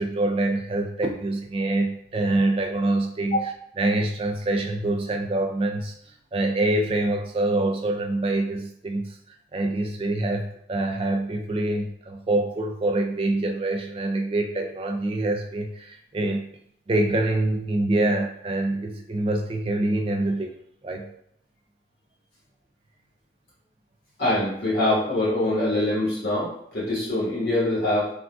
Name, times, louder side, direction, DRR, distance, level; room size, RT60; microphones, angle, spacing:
voice 1, 0.0-3.4 3.8-9.2 9.5-16.5 16.9-20.5 20.8-21.1, right 2 dB, 30° right, 4 dB, 0.3 m, -25 dB
voice 2, 24.2-28.1, left 1 dB, 60° left, -8 dB, 1.4 m, -24 dB
3.5 x 2.5 x 2.3 m, 0.69 s
head